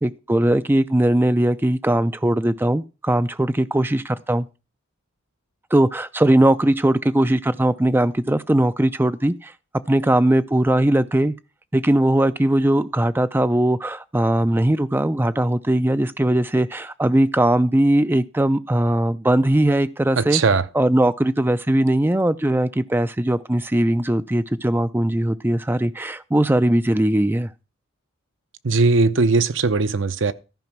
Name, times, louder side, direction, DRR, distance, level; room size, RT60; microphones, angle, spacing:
voice 1, 0.0-4.5 5.7-9.5 9.9-11.3 11.7-20.4 20.7-27.5, right 1 dB, 10° right, 0.4 m, -19 dB
voice 2, 20.2-20.6 28.6-30.3, right 3 dB, 60° right, 0.7 m, -19 dB
14.0 x 5.1 x 5.9 m
head